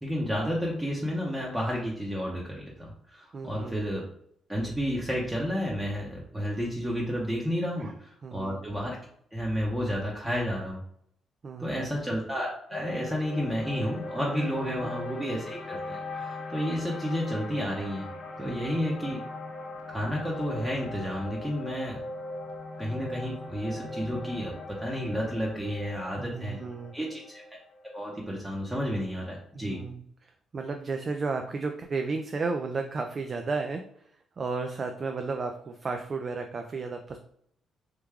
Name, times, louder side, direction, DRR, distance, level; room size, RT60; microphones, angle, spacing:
voice 1, 0.0-4.0 4.5-9.0 9.3-10.8 11.6-18.1 18.4-19.2 19.9-22.0 22.8-26.6 26.9-27.4 27.8-29.8, equal, 10° right, -3 dB, 0.7 m, -31 dB
voice 2, 3.3-3.8 7.8-7.9 8.2-8.6 11.4-11.9 14.5-14.9 18.4-18.9 26.2-26.9 29.5-33.8 34.4-37.2, right 4 dB, 40° right, 5 dB, 0.3 m, -33 dB
sound 1, 12.7-29.0, left 2 dB, 55° left, 0.6 m, -40 dB
3.2 x 2.3 x 3.4 m, 0.68 s
cardioid pair, 90°, 0 cm